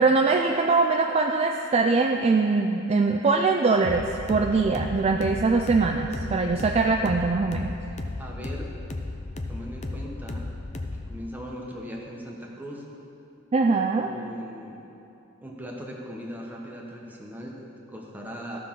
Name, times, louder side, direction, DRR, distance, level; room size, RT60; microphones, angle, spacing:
voice 1, 0.0-7.8 13.5-14.1, right 4 dB, 30° right, 3 dB, 0.3 m, -22 dB
sound 1, 3.8-11.2, left 2 dB, 30° left, 0.5 m, -35 dB
voice 2, 8.2-8.8 9.5-10.5 10.9-12.8 13.9-14.9 15.4-18.6, equal, 10° right, -2 dB, 1.0 m, -39 dB
14.5 x 5.8 x 3.7 m, 2.8 s
head